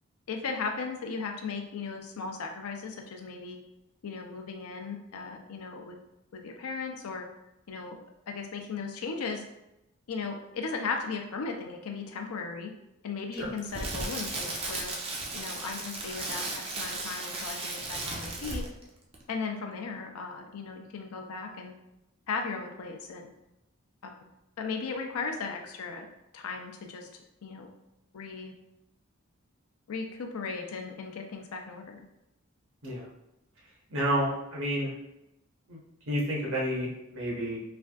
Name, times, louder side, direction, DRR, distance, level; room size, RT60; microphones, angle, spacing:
voice 1, 0.3-3.6 4.0-6.0 6.3-7.2 7.7-8.0 8.3-9.4 10.1-12.7 13.0-14.9 15.3-18.6 19.3-21.7 22.3-23.3 24.0-24.3 24.6-26.1 26.3-27.1 27.4-27.7 28.1-28.5 29.9-32.1, left 4 dB, 90° left, 4 dB, 0.5 m, -36 dB
Crackle, 13.4-18.9 19.1-19.3, right 2 dB, 25° right, 0.4 m, -35 dB
voice 2, 33.9-34.9 35.7-35.8 36.1-37.6, equal, 70° right, -4 dB, 1.0 m, -30 dB
3.3 x 2.5 x 2.3 m, 0.88 s
head